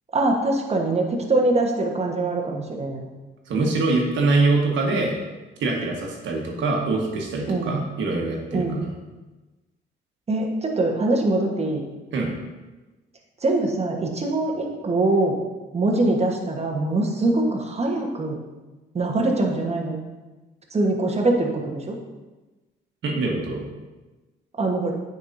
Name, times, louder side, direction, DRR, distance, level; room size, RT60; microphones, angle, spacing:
voice 1, 0.1-3.1 7.5-7.8 8.5-8.9 10.3-11.9 13.4-15.4 15.7-18.4 18.9-20.0 20.7-22.0 24.6-24.9, right 2 dB, 30° right, 1 dB, 1.3 m, -23 dB
voice 2, 3.5-5.2 5.6-8.9 12.1-12.3 23.0-23.6, right 3 dB, 70° right, 0 dB, 1.4 m, -23 dB
8.7 x 5.4 x 2.7 m, 1.2 s
cardioid pair, 90°, 20 cm